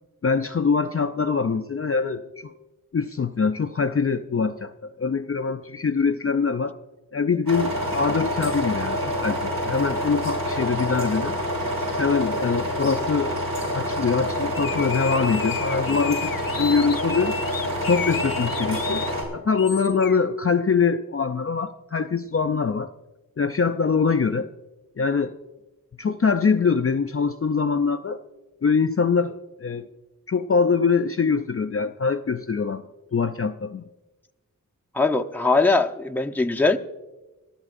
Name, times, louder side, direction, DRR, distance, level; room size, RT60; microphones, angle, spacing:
voice 1, 0.2-2.5 2.9-6.8 7.1-11.4 12.0-13.4 13.7-17.4 17.8-19.1 19.3-22.9 23.4-24.5 25.0-25.4 26.0-28.2 28.6-29.9 30.3-32.8 33.1-33.9, left 5 dB, 40° left, 8 dB, 0.5 m, -23 dB
sound 1, 7.5-19.2, equal, 80° right, 6.3 m, -27 dB
sound 2, 14.5-19.1 19.5-20.2, left 7 dB, 80° left, 0.7 m, -33 dB
voice 2, 34.9-36.8, left 3 dB, 5° left, 3 dB, 0.7 m, -21 dB
24.5 x 14.0 x 2.5 m, 1.1 s
wide cardioid pair, 60°, 34 cm